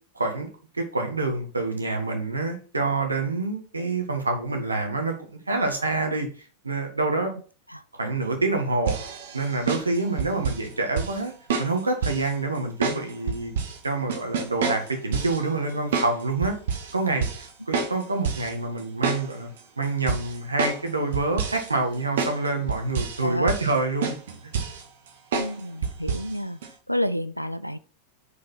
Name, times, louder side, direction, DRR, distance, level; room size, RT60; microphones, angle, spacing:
voice 1, 0.1-0.5 0.7-6.3 6.6-7.3 7.9-9.0 9.3-11.3 11.6-13.5 13.8-16.5 16.9-19.5 19.8-24.1, right 3 dB, 80° right, 4 dB, 1.7 m, -27 dB
sound 1, 8.9-10.7 11.0-11.2 11.5-12.3 12.8-13.8 14.1-15.4 15.9-16.1 16.4-16.9 17.2-17.5 17.7-18.5 18.8-19.6 20.1-20.9 21.1-21.7 22.2-22.4 22.7-23.2 23.5-23.8 24.0-24.8 25.3-25.5 25.8-26.3 26.6-26.7, right 5 dB, 60° right, 1.4 m, -28 dB
voice 2, 23.2-23.5 25.3-26.6 26.9-27.8, equal, 90° left, 14 dB, 0.4 m, -29 dB
6.6 x 5.3 x 4.3 m, 0.38 s
figure-of-eight pair, 90°, 0 cm